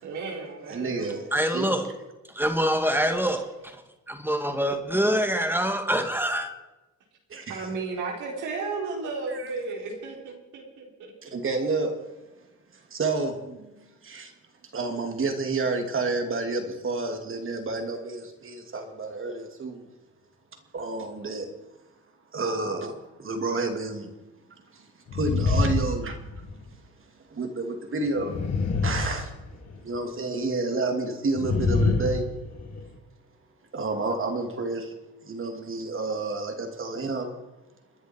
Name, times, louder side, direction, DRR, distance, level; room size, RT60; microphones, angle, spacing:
voice 1, 0.0-1.2 7.5-11.1, right 4 dB, 85° right, -1 dB, 4.2 m, -34 dB
voice 2, 0.6-1.9 7.3-7.7 9.3-9.5 11.2-12.0 12.9-13.8 14.0-14.3 14.7-19.9 20.7-21.5 22.3-24.1 24.7-24.9 25.1-26.2 27.3-28.3 28.8-29.3 29.8-32.3 33.7-34.9 35.2-37.3, right 3 dB, 45° right, 4 dB, 2.9 m, -30 dB
voice 3, 1.3-1.9 2.3-3.7 4.1-6.5, equal, 5° right, 6 dB, 2.1 m, -25 dB
sound 1, 25.1-26.7 28.1-29.8 31.3-32.9, left 3 dB, 60° left, 2.6 m, -26 dB
29.5 x 10.0 x 4.7 m, 1.1 s
cardioid pair, 90°, 30 cm